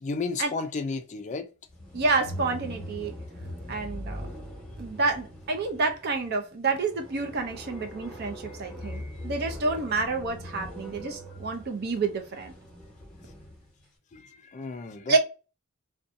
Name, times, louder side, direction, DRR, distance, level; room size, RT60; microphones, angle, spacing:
voice 1, 0.0-1.5 8.8-9.2 14.1-15.1, left 4 dB, 35° left, 0.4 m, -33 dB
sound 1, 1.7-13.7, equal, 5° left, 1.0 m, -41 dB
voice 2, 1.9-3.1 3.7-4.2 4.8-12.5 15.1-15.2, right 3 dB, 50° right, 0.5 m, -28 dB
2.6 x 2.2 x 2.5 m
head